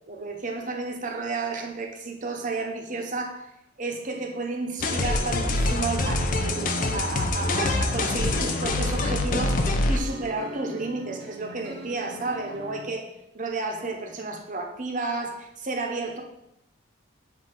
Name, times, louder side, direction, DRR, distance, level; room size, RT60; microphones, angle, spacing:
voice 1, 0.1-3.5 3.8-13.1 13.3-16.2, right 3 dB, 40° right, 2 dB, 0.8 m, -32 dB
sound 1, 4.8-10.0, left 2 dB, 45° left, 0.6 m, -25 dB
sound 2, 6.1-12.9, equal, 75° right, 1.0 m, -41 dB
7.7 x 2.7 x 4.6 m, 0.82 s
head